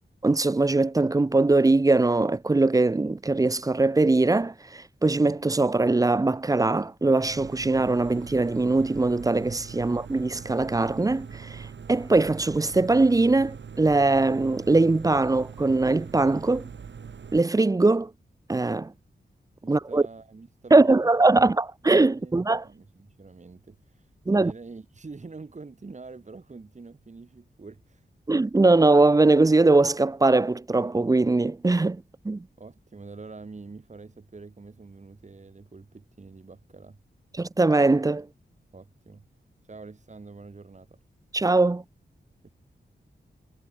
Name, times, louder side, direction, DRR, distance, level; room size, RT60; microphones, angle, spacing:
voice 1, 0.2-16.7 17.3-18.1 18.5-18.9 19.7-20.0 20.7-22.6 24.3-24.5 28.3-32.4 37.4-38.3 41.3-41.8, right 2 dB, 20° right, 0.5 m, -21 dB
sound 1, 7.2-17.4, right 6 dB, 80° right, 5.2 m, -42 dB
voice 2, 19.6-21.5 22.1-28.1 32.6-37.0 38.7-39.3 39.6-41.0 42.4-42.5, right 4 dB, 40° right, 4.3 m, -45 dB
wide cardioid pair, 115°, 19 cm